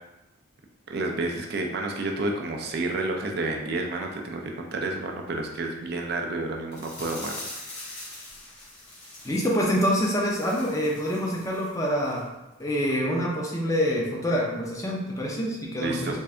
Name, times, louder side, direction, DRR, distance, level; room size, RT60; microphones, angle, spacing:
voice 1, 0.9-7.9 15.8-16.2, right 2 dB, 50° right, 2 dB, 0.4 m, -30 dB
sound 1, 6.7-11.7 12.0-12.2 12.6-12.7, left 2 dB, 50° left, 1.3 m, -43 dB
voice 2, 9.2-12.3 12.6-16.2, equal, 15° left, -2 dB, 0.5 m, -26 dB
3.5 x 2.5 x 3.2 m, 0.99 s
head